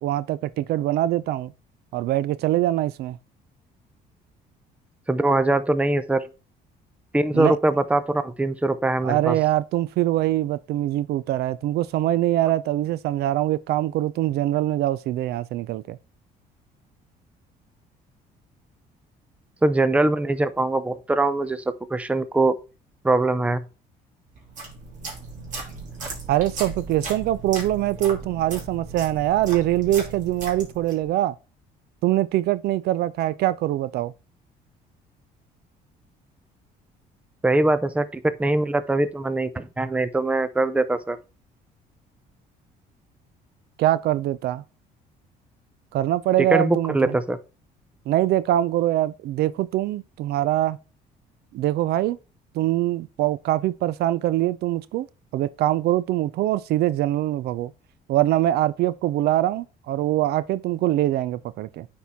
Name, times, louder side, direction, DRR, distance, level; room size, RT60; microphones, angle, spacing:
voice 1, 0.0-1.5 1.9-3.2 7.3-7.6 9.0-16.0 26.3-31.3 32.0-34.1 43.8-44.6 45.9-47.2 48.1-50.8 51.5-52.2 52.5-55.1 55.3-57.7 58.1-61.9, right 14 dB, 70° right, 0.4 m, -23 dB
voice 2, 5.1-6.2 7.1-9.4 19.6-21.6 21.9-22.6 23.0-23.6 37.4-41.2 46.5-47.4, right 2 dB, 10° right, 0.6 m, -22 dB
sound 1, 24.4-31.1, right 3 dB, 50° right, 2.7 m, -36 dB
9.2 x 4.4 x 3.5 m
cardioid pair, 110°, 17 cm